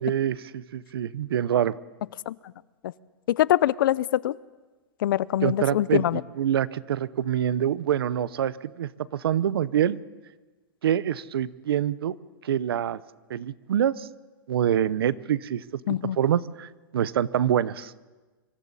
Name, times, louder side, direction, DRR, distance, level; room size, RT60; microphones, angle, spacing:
voice 1, 0.0-1.7 5.4-10.0 10.8-12.2 12.4-13.0 13.3-14.1 14.5-17.9, right 10 dB, 80° right, 18 dB, 0.8 m, -26 dB
voice 2, 3.3-4.3 5.0-6.2 15.9-16.2, left 13 dB, 65° left, 21 dB, 0.6 m, -23 dB
25.0 x 25.0 x 4.2 m, 1.2 s
hypercardioid pair, 155°, 12 cm